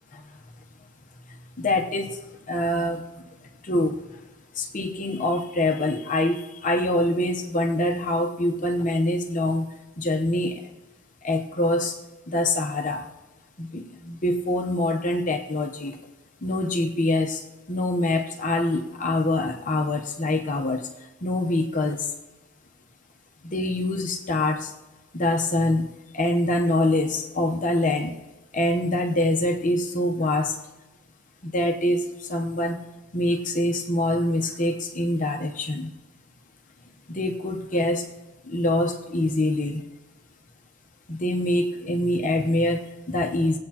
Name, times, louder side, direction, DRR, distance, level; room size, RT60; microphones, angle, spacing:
voice 1, 1.6-2.2 2.5-3.0 3.6-4.0 4.6-9.7 10.0-10.6 11.2-12.0 12.3-13.1 13.6-16.0 16.4-20.9 21.2-22.1 23.4-24.7 25.1-25.9 26.1-28.2 28.5-30.6 31.4-32.8 33.1-35.9 37.1-38.1 38.5-39.8 41.1-43.6, left 1 dB, 35° left, 3 dB, 0.8 m, -25 dB
20.5 x 8.6 x 2.9 m, 1.1 s
head